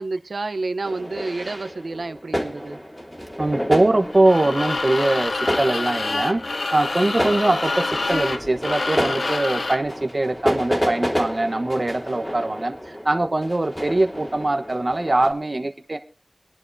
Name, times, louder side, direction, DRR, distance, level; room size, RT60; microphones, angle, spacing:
voice 1, 0.0-2.8, right 3 dB, 75° right, 12 dB, 0.8 m, -29 dB
sound 1, 0.8-15.3, equal, 15° left, 3.1 m, -30 dB
voice 2, 3.4-16.0, right 2 dB, 40° right, 6 dB, 1.1 m, -22 dB
sound 2, 4.1-9.9, left 3 dB, 70° left, 0.7 m, -27 dB
23.5 x 10.5 x 2.7 m, 0.33 s
wide cardioid pair, 60°, 0 cm